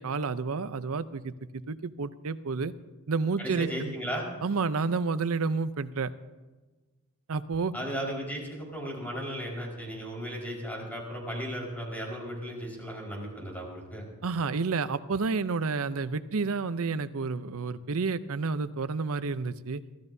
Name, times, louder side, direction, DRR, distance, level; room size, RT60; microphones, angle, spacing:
voice 1, 0.0-2.7 3.1-3.9 4.4-6.1 7.3-7.7 14.2-19.8, right 4 dB, 70° right, 14 dB, 0.6 m, -30 dB
voice 2, 3.4-4.3 7.7-14.1, equal, 10° left, -2 dB, 4.7 m, -35 dB
25.0 x 14.5 x 2.7 m, 1.2 s
head